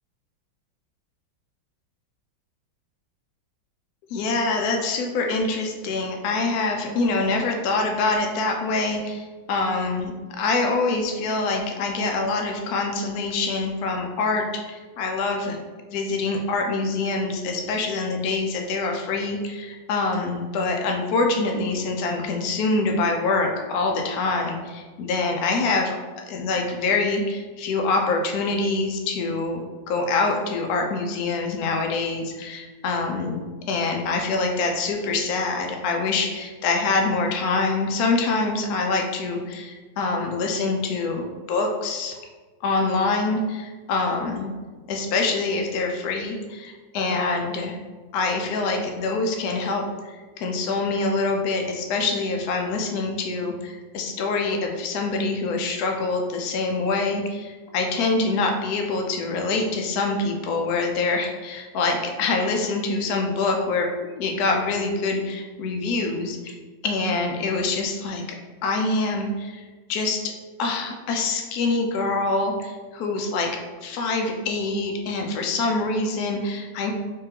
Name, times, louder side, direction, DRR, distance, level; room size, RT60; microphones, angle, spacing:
voice 1, 4.1-10.1 10.4-15.6 15.9-26.0 26.2-33.4 33.7-42.2 42.6-44.5 44.9-47.7 48.1-49.9 50.4-66.5 66.8-68.2 68.6-69.6 69.9-70.3 70.6-73.5 73.8-76.9, left 3 dB, 80° left, 2 dB, 0.8 m, -25 dB
3.7 x 3.2 x 2.8 m, 1.4 s
omnidirectional pair, 2.2 m